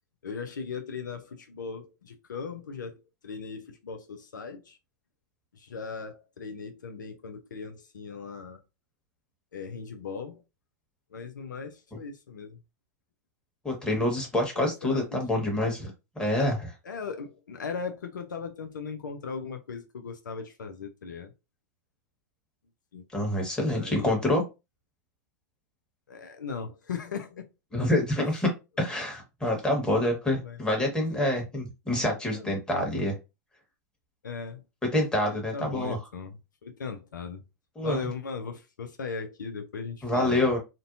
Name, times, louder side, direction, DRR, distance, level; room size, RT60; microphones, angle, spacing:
voice 1, 0.2-2.9 3.2-4.8 5.5-8.6 9.5-10.4 11.1-12.6 14.6-15.4 16.8-21.3 22.9-23.0 23.7-24.2 26.1-27.5 30.4-30.6 32.3-32.5 34.2-34.6 35.3-37.4 37.8-40.5, left 5 dB, 85° left, 0.4 m, -38 dB
voice 2, 13.6-15.9 16.2-16.7 23.1-24.4 27.7-28.5 28.8-33.2 34.9-36.0 37.8-38.1 40.0-40.6, left 1 dB, 10° left, 1.2 m, -27 dB
2.6 x 2.1 x 2.5 m
hypercardioid pair, 100°, 10 cm